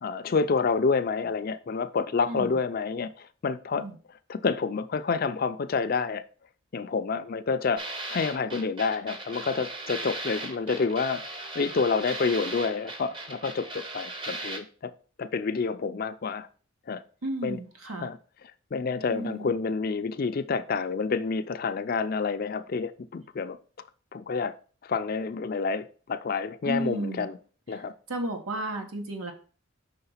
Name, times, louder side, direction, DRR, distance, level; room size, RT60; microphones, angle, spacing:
voice 1, 0.0-3.8 4.3-6.2 6.7-14.9 15.2-16.5 16.9-17.0 17.4-17.6 18.0-18.2 18.7-23.6 24.1-24.5 24.8-27.4 27.7-27.9, left 4 dB, 45° left, 0.4 m, -28 dB
voice 2, 2.3-2.6 3.7-3.9 17.2-18.1 19.1-19.5 26.6-27.3 27.7-27.8 28.1-29.3, right 1 dB, 90° right, 1.3 m, -33 dB
sound 1, 7.8-14.6, right 2 dB, 25° right, 0.7 m, -38 dB
5.7 x 3.7 x 5.6 m
head